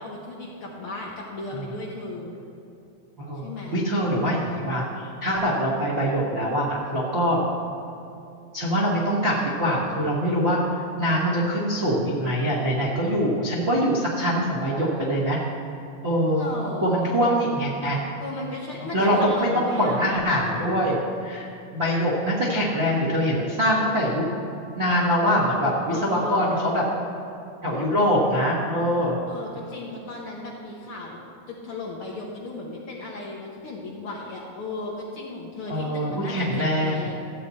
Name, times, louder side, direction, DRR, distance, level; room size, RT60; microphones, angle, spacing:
voice 1, 0.0-2.3 3.4-3.8 16.3-17.1 18.2-20.0 25.9-26.9 29.3-31.2 31.5-37.3, left 2 dB, 65° left, -2 dB, 1.4 m, -35 dB
voice 2, 3.2-7.4 8.5-15.4 16.0-16.5 16.8-18.0 18.9-21.5 21.7-24.2 24.8-26.8 27.6-29.2 35.7-37.1, equal, 85° right, -7 dB, 0.5 m, -23 dB
13.5 x 8.2 x 4.1 m, 2.8 s
omnidirectional pair, 3.6 m